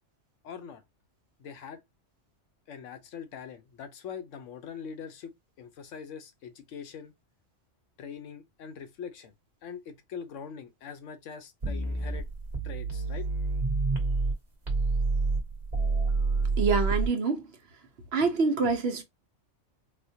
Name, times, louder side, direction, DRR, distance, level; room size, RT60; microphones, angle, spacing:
voice 1, 0.4-0.8 1.4-1.8 2.7-7.1 8.0-9.3 9.6-12.3 12.6-13.3, left 7 dB, 85° left, 1.0 m, -42 dB
sound 1, 11.6-14.3 14.7-17.1, right 3 dB, 40° right, 1.1 m, -28 dB
voice 2, 16.6-17.5 18.1-19.0, right 4 dB, 60° right, 0.9 m, -26 dB
4.2 x 2.2 x 2.7 m
omnidirectional pair, 1.2 m